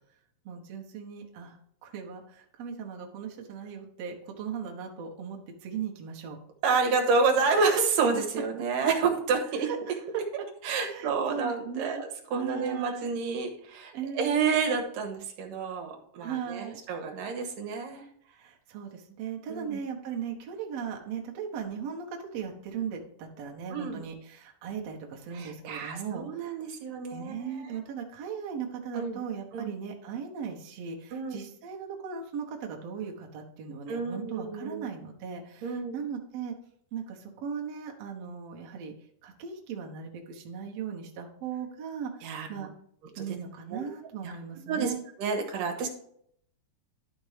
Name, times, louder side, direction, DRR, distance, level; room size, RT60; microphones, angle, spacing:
voice 1, 0.5-6.4 9.6-10.0 10.7-12.0 12.3-13.1 13.9-14.4 16.2-16.8 18.3-26.6 27.1-36.5 36.9-38.9 39.2-42.7 43.2-45.0, right 7 dB, 60° right, 0 dB, 2.0 m, -38 dB
voice 2, 6.6-9.7 10.6-18.0 19.5-19.8 23.7-24.0 25.3-27.8 28.9-29.2 29.5-29.7 31.1-31.4 33.9-34.8 35.6-35.9 42.2-42.7 43.2-43.3 43.7-43.9 44.2-44.3 44.7-44.9 45.2-45.9, right 5 dB, 80° right, 2 dB, 2.7 m, -29 dB
12.0 x 5.1 x 3.4 m, 0.68 s
omnidirectional pair, 3.9 m